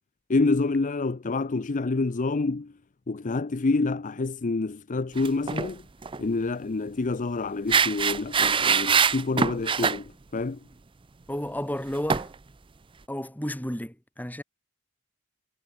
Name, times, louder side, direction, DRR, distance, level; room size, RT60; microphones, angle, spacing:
voice 1, 0.3-2.7 3.1-5.8 6.2-10.6, left 3 dB, 40° left, 0.6 m, -27 dB
sound 1, 5.2-5.7 6.0-6.2 7.7-10.0 12.1-12.3, right 6 dB, 25° right, 0.5 m, -23 dB
voice 2, 11.3-12.3 13.1-14.4, equal, 10° left, 4.7 m, -32 dB
head